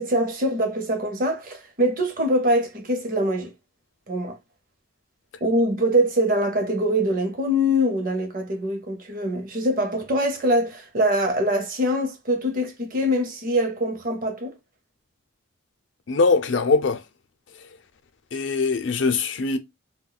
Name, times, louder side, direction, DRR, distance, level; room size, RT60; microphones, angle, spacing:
voice 1, 0.0-3.5 4.1-4.4 5.4-14.5, equal, 45° right, 0.7 m, -23 dB
voice 2, 16.1-17.0 18.3-19.6, left 4 dB, 70° left, 0.5 m, -21 dB
2.3 x 2.2 x 3.8 m
head